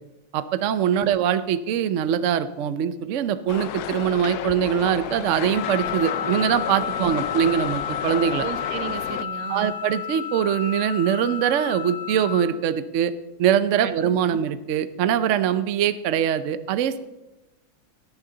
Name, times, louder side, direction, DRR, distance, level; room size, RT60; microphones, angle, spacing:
voice 1, 0.3-8.5 9.5-13.1 13.4-17.0, right 9 dB, 70° right, 12 dB, 0.7 m, -23 dB
sound 1, 3.5-9.2, left 10 dB, 70° left, 1.0 m, -32 dB
Wind instrument woodwind instrument, 5.5-12.4, left 8 dB, 30° right, 3.9 m, -32 dB
voice 2, 8.4-9.8 13.8-13.9, right 9 dB, 90° right, 12 dB, 1.6 m, -35 dB
17.0 x 10.0 x 3.9 m, 1.0 s
omnidirectional pair, 2.1 m